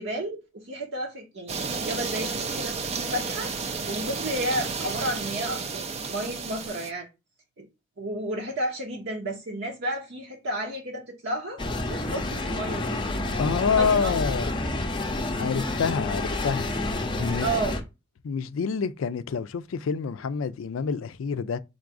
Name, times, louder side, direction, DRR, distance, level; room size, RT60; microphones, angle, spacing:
voice 1, 0.0-3.5 3.9-7.1 7.6-7.7 8.0-11.6 11.9-13.0 13.7-14.2 17.4-17.8, right 1 dB, 60° right, 0.7 m, -32 dB
sound 1, 1.5-6.9, right 4 dB, 30° right, 0.4 m, -32 dB
sound 2, 11.6-17.8, left 2 dB, 25° left, 0.6 m, -29 dB
voice 2, 13.4-14.5 15.4-16.7 17.2-17.5 18.2-21.6, left 5 dB, 85° left, 0.4 m, -27 dB
3.9 x 2.5 x 4.6 m
head